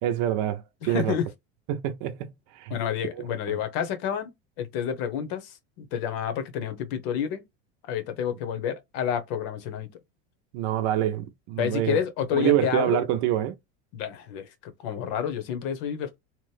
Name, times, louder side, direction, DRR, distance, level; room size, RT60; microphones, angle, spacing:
voice 1, 0.0-0.6 0.9-1.2 1.7-2.2 2.5-2.7 3.2-3.6 10.5-12.0 12.3-13.5, right 12 dB, 60° right, 0.6 m, -26 dB
voice 2, 0.8-1.3 2.7-4.3 4.6-7.4 7.9-9.9 11.6-13.0 13.9-16.2, left 8 dB, 70° left, 1.0 m, -29 dB
3.0 x 2.0 x 3.2 m
supercardioid pair, 120°, 34 cm